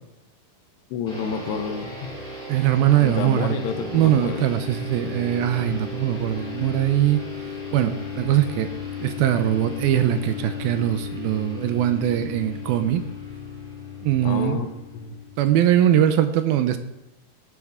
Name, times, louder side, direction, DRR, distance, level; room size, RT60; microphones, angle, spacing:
voice 1, 0.9-2.1 3.0-4.5 14.2-14.7 14.9-15.2, left 6 dB, 90° left, 7 dB, 3.1 m, -29 dB
sound 1, 1.1-15.9, left 5 dB, 10° left, 5.7 m, -35 dB
voice 2, 2.5-3.6 3.9-7.2 7.7-8.7 9.0-13.0 14.0-14.6 15.4-16.8, right 11 dB, 80° right, 9 dB, 2.3 m, -21 dB
17.5 x 10.0 x 3.7 m, 0.93 s
omnidirectional pair, 4.6 m